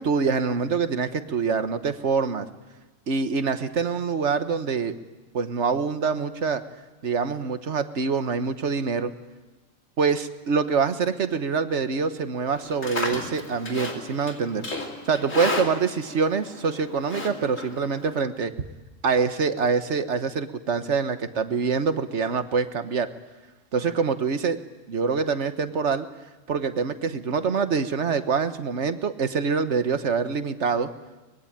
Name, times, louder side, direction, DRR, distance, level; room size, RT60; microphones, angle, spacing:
voice 1, 0.0-2.5 3.1-5.0 5.3-6.6 7.0-9.1 10.0-14.6 15.1-18.5 19.0-23.1 23.7-24.6 24.9-26.1 26.5-30.9, right 5 dB, 65° right, 10 dB, 1.6 m, -25 dB
Livestock farm animals working animals, 12.6-18.2, left 2 dB, 90° left, 3.2 m, -34 dB
24.0 x 22.0 x 8.9 m, 1.1 s
omnidirectional pair, 1.3 m